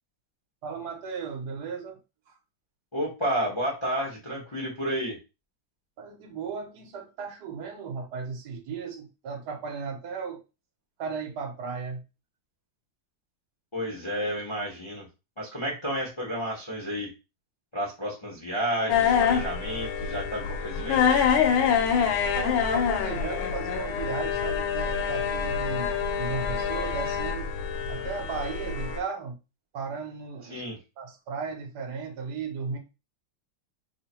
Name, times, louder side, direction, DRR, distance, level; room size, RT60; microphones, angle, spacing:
voice 1, 0.6-2.0 2.3-2.4 6.0-10.4 11.0-12.0 22.2-27.5 27.9-29.3 29.7-30.6 31.0-32.8, right 5 dB, 60° right, 3 dB, 1.4 m, -35 dB
voice 2, 2.9-5.2 13.7-15.1 15.4-17.1 17.7-21.2 30.5-30.8, equal, 45° left, -2 dB, 0.4 m, -31 dB
sound 1, 18.9-29.0, left 7 dB, 80° left, 1.5 m, -26 dB
3.6 x 2.2 x 4.3 m, 0.28 s
omnidirectional pair, 2.3 m